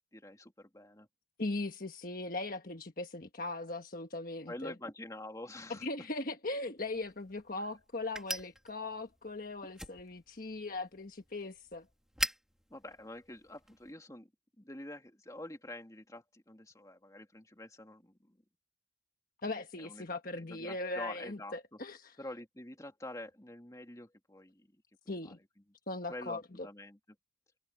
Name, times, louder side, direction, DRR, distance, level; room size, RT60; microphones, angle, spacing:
voice 1, 0.1-1.1 4.5-5.9 7.6-7.7 12.7-14.3 14.6-18.4 19.8-20.1 20.4-21.8 22.2-24.7 25.2-25.3 26.1-27.0, left 1 dB, 15° left, 2.8 m, -47 dB
voice 2, 1.4-4.7 5.7-11.8 19.4-22.2 25.1-25.4 25.9-26.7, left 2 dB, 45° left, 1.4 m, -39 dB
sound 1, 6.8-13.9, right 1 dB, 5° right, 2.2 m, -44 dB
head